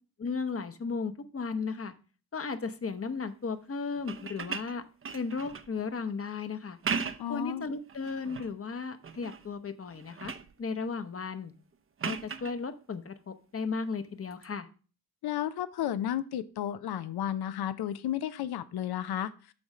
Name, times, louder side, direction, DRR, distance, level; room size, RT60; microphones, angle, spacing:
voice 1, 0.2-1.9 2.3-4.8 5.1-6.8 7.3-10.3 10.6-11.5 12.0-14.7, left 4 dB, 35° left, 10 dB, 0.8 m, -35 dB
sound 1, 4.0-5.8 6.7-7.4 7.9-8.5 9.0-9.5 9.8-10.5 12.0-12.6 14.3-14.5, right 6 dB, 35° right, 0.6 m, -37 dB
voice 2, 7.2-7.7 15.2-19.5, left 11 dB, 80° left, 13 dB, 0.6 m, -33 dB
8.5 x 3.1 x 6.4 m, 0.36 s
cardioid pair, 75°, 38 cm